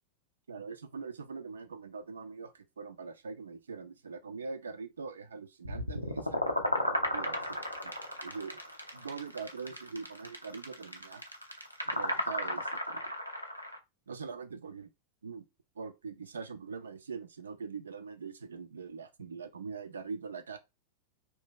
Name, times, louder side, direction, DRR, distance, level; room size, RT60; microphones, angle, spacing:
voice 1, 0.5-7.6 7.8-7.9 8.2-8.6 8.9-11.2 11.9-13.2 14.1-14.9 15.2-15.4 15.8-20.6, right 5 dB, 70° right, 0.3 m, -43 dB
sound 1, 5.6-13.8, left 1 dB, 90° left, 0.5 m, -34 dB
2.6 x 2.2 x 3.6 m
figure-of-eight pair, 90°, 0 cm